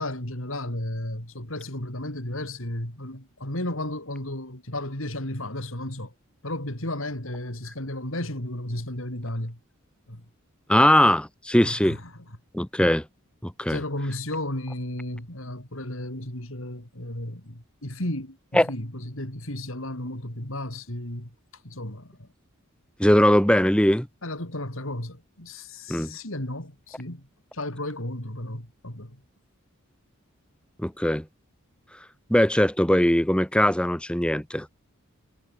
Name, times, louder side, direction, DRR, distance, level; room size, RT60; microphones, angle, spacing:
voice 1, 0.0-6.1 6.4-9.6 10.1-10.2 11.6-12.0 13.7-21.3 21.6-22.3 24.2-27.3 27.5-29.2, left 1 dB, 65° left, 5.1 m, -33 dB
voice 2, 10.7-12.0 12.5-13.0 13.4-13.8 18.5-18.7 23.0-24.1 25.9-26.2 30.8-31.2 32.3-34.7, equal, 5° left, 1.4 m, -20 dB
head